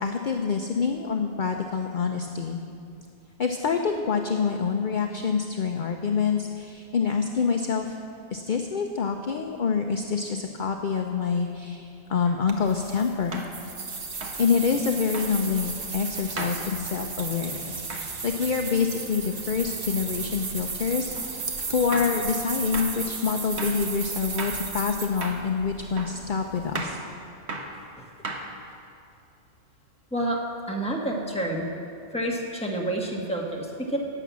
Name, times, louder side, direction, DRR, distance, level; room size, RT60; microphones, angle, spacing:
voice 1, 0.0-2.6 3.4-8.0 8.3-13.4 14.4-27.0, left 5 dB, 50° left, 4 dB, 0.7 m, -26 dB
sound 1, 12.2-12.4 13.3-13.6 14.2-14.4 15.1-15.3 16.4-16.6 17.9-18.1 21.2-21.3 21.9-22.2 22.7-22.9 23.6-23.8 24.4-24.6 25.2-25.5 26.0-26.2 26.7-27.0 27.5-27.7 28.2-28.7, right 3 dB, 70° right, 1.5 m, -35 dB
sound 2, 12.5-26.8, right 4 dB, 55° right, 1.3 m, -35 dB
voice 2, 30.7-31.7 32.1-34.0, right 1 dB, 5° left, -2 dB, 1.5 m, -28 dB
12.0 x 9.2 x 7.3 m, 2.5 s
omnidirectional pair, 1.2 m